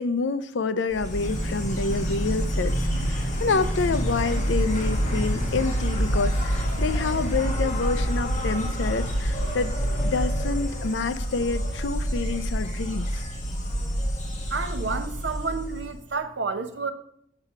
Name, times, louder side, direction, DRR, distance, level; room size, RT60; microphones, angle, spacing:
voice 1, 0.0-9.7 10.0-13.2, left 4 dB, 75° left, 0.5 m, -28 dB
Insect, 0.9-16.0, equal, 40° left, 1.7 m, -27 dB
voice 2, 14.5-16.9, right 4 dB, 65° right, 0.8 m, -30 dB
7.7 x 5.8 x 5.6 m
head